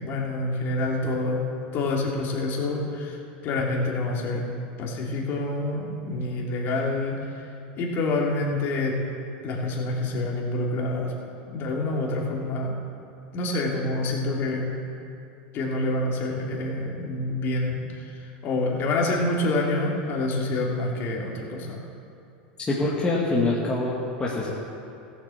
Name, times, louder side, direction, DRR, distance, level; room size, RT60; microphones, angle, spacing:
voice 1, 0.0-1.4 1.7-3.2 3.4-4.4 4.8-7.2 7.8-9.0 9.4-11.1 11.5-12.8 13.3-14.7 15.5-21.8, left 2 dB, 45° left, -2 dB, 3.0 m, -27 dB
voice 2, 22.7-24.5, left 2 dB, 20° left, -5 dB, 2.0 m, -25 dB
14.5 x 8.3 x 7.2 m, 2.6 s
supercardioid pair, 115°, 5 cm